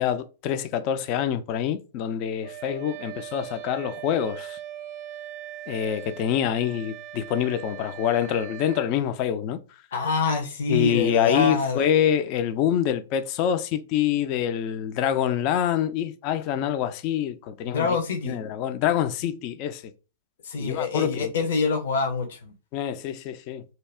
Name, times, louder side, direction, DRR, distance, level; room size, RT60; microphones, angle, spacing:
voice 1, 0.0-4.6 5.7-9.6 10.7-18.0 18.2-19.9 20.6-21.3 22.7-23.6, left 9 dB, 40° left, 0.4 m, -26 dB
Wind instrument woodwind instrument, 2.4-9.0, right 12 dB, 45° right, 0.5 m, -40 dB
voice 2, 9.9-11.9 17.7-18.4 20.4-22.5, left 4 dB, 65° left, 0.8 m, -26 dB
2.8 x 2.3 x 3.3 m
hypercardioid pair, 110°, 0 cm